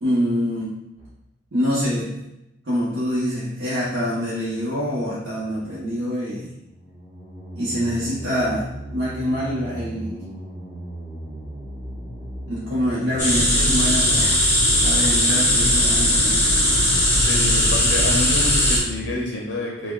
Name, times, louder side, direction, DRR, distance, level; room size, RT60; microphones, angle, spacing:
voice 1, 0.0-0.7 1.5-2.2 2.6-6.5 7.5-8.7 8.9-10.2 12.5-14.5 14.8-16.8, equal, 75° right, -9 dB, 0.8 m, -25 dB
sound 1, 1.0-1.1 6.6-19.2, right 1 dB, 45° right, 1.4 m, -36 dB
sound 2, 13.2-18.8, left 1 dB, 10° left, 0.6 m, -18 dB
voice 2, 17.2-19.9, left 2 dB, 60° left, -2 dB, 0.5 m, -28 dB
5.7 x 2.1 x 2.3 m, 0.88 s
head